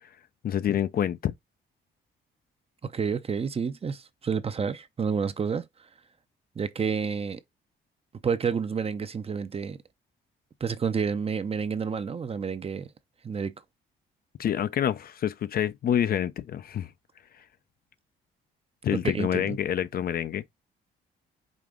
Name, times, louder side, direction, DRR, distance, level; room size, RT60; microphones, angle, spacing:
voice 1, 0.4-1.3 14.4-16.9 18.8-20.4, left 10 dB, 50° left, 0.4 m, -27 dB
voice 2, 2.8-5.7 6.6-7.4 8.2-9.8 10.6-12.9 13.2-13.5 18.9-19.6, right 6 dB, 30° right, 0.5 m, -29 dB
5.1 x 2.5 x 3.6 m
cardioid pair, 90°, 20 cm